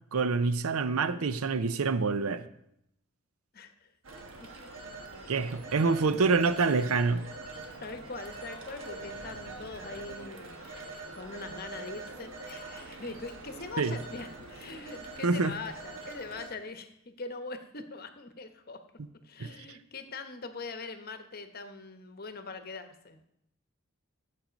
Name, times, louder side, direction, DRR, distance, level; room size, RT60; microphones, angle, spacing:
voice 1, 0.1-2.5 5.3-7.3 13.8-14.0 15.2-15.5 19.4-19.8, right 4 dB, 80° right, 0.6 m, -27 dB
voice 2, 3.5-3.9 4.4-4.5 5.1-5.3 7.8-18.8 19.2-23.3, left 3 dB, 45° left, 1.0 m, -42 dB
Telephone, 4.0-16.5, right 3 dB, 65° right, 1.4 m, -44 dB
13.0 x 7.7 x 5.2 m
head